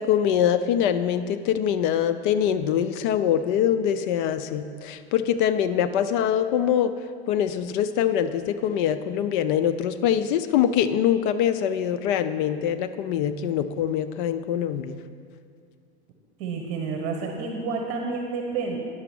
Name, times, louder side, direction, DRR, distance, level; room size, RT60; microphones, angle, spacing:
voice 1, 0.0-6.9 7.3-15.0, left 9 dB, 50° left, 11 dB, 0.5 m, -24 dB
voice 2, 16.4-18.8, right 4 dB, 40° right, 2 dB, 1.3 m, -29 dB
10.0 x 6.8 x 6.1 m, 2.2 s
supercardioid pair, 130°, 34 cm